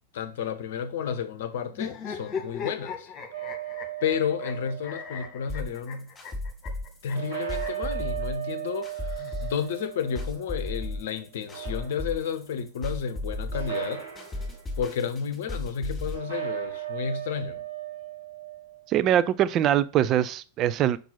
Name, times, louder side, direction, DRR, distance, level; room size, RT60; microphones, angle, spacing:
voice 1, 0.1-3.1 4.0-6.1 7.0-14.0 14.8-17.6, left 7 dB, 55° left, 0.8 m, -31 dB
sound 1, 1.7-7.9 8.9-10.0, left 6 dB, 30° left, 1.5 m, -38 dB
sound 2, 3.3-5.4 7.1-10.9 11.4-12.4 13.5-14.6 16.1-18.8, right 13 dB, 60° right, 3.4 m, -36 dB
sound 3, 5.5-16.2, left 2 dB, 10° left, 2.7 m, -35 dB
voice 2, 18.9-21.0, right 11 dB, 35° right, 0.4 m, -23 dB
5.4 x 4.5 x 5.5 m
figure-of-eight pair, 90°, 0 cm